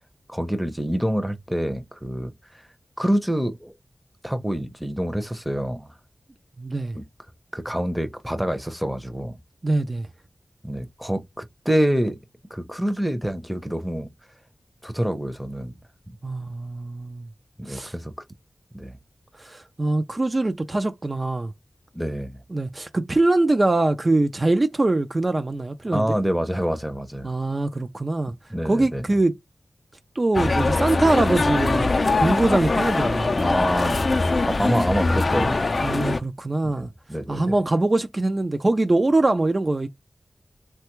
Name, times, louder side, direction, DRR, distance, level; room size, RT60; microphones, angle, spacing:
voice 1, 0.3-2.6 3.0-3.7 4.2-5.9 6.9-7.0 7.5-9.4 10.6-12.2 12.5-14.1 14.8-15.7 16.1-16.2 17.6-18.1 18.7-19.0 21.9-22.4 25.9-27.3 28.5-29.1 33.4-34.0 34.5-35.6 36.6-37.6, equal, 5° right, 0.6 m, -26 dB
voice 2, 6.6-7.0 9.6-10.1 16.2-17.3 17.7-17.9 19.4-21.5 22.5-26.2 27.2-28.3 28.6-29.3 30.2-33.4 35.8-36.9 37.3-39.9, right 2 dB, 40° right, 0.4 m, -23 dB
sound 1, 30.3-36.2, left 3 dB, 55° left, 0.4 m, -22 dB
3.3 x 2.3 x 3.0 m
wide cardioid pair, 55°, 0 cm